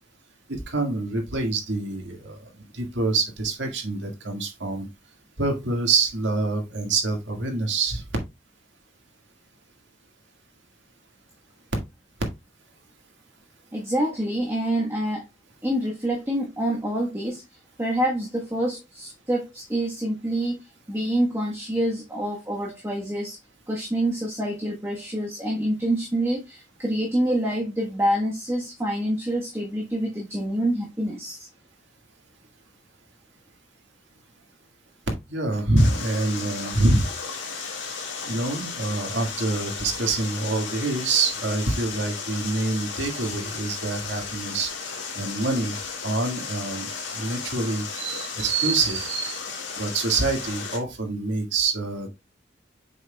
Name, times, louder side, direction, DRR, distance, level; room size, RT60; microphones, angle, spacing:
voice 1, 0.5-2.4 2.7-4.9 5.4-8.0 35.3-37.1 38.3-44.7 45.2-45.8 46.0-49.4 49.8-52.1, right 3 dB, 75° right, 1.8 m, -26 dB
voice 2, 13.7-15.3 15.6-17.4 17.8-23.4 23.7-31.5, right 1 dB, 15° right, 1.3 m, -26 dB
Water, 35.8-50.8, left 5 dB, 80° left, 2.0 m, -34 dB
7.5 x 5.9 x 2.3 m
head